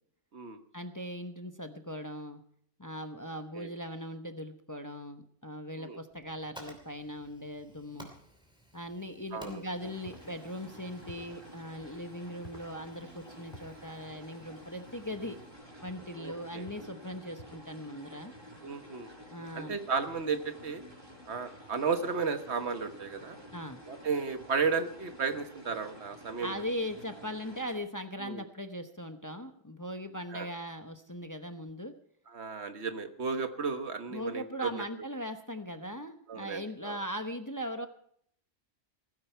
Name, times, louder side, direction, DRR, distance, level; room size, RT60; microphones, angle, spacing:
voice 1, 0.7-2.4 2.8-8.1 8.7-15.4 15.8-18.3 19.3-19.8 23.5-23.8 26.4-31.9 34.1-37.9, equal, 20° left, 7 dB, 0.9 m, -39 dB
Fire, 6.1-15.5, equal, 5° right, 2.9 m, -56 dB
voice 2, 9.3-9.6 16.2-16.7 18.6-19.1 19.5-20.8 21.3-23.4 23.9-26.6 28.2-28.4 30.3-30.5 32.3-34.8 36.3-37.0, right 5 dB, 70° right, 8 dB, 1.5 m, -34 dB
sound 1, 9.8-27.7, equal, 20° right, 5.7 m, -51 dB
sound 2, 10.0-10.3 11.1-11.4 12.4-12.7 13.5-13.8 15.0-15.3 15.9-16.1 16.6-17.0 17.4-17.7, equal, 45° left, 2.9 m, -51 dB
16.5 x 15.0 x 4.5 m, 0.65 s
omnidirectional pair, 1.2 m